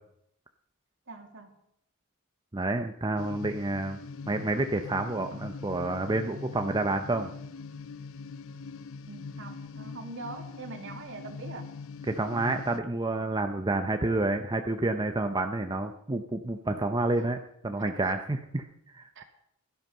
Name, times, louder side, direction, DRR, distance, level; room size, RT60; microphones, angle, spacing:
voice 1, 1.1-1.5 9.1-11.7 17.2-17.4 18.0-18.1 19.2-19.3, right 3 dB, 60° right, 5 dB, 2.3 m, -43 dB
voice 2, 2.5-4.0 4.3-7.3 12.1-17.4 17.6-19.2, right 2 dB, 20° right, 6 dB, 0.7 m, -29 dB
sound 1, 3.2-12.8, left 4 dB, 65° left, 0.7 m, -42 dB
17.0 x 12.5 x 5.5 m, 0.74 s
head